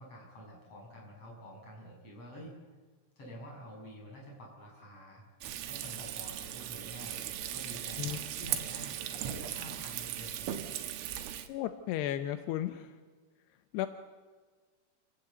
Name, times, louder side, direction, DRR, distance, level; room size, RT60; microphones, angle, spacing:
voice 1, 0.0-2.6 3.2-5.2 5.6-10.5, equal, 30° left, -2 dB, 7.7 m, -48 dB
Frying (food), 5.4-11.5, right 11 dB, 75° right, 3.8 m, -38 dB
voice 2, 11.5-13.0 13.7-13.9, left 12 dB, 80° left, 9 dB, 2.5 m, -34 dB
28.5 x 18.0 x 8.1 m, 1.5 s
omnidirectional pair, 5.7 m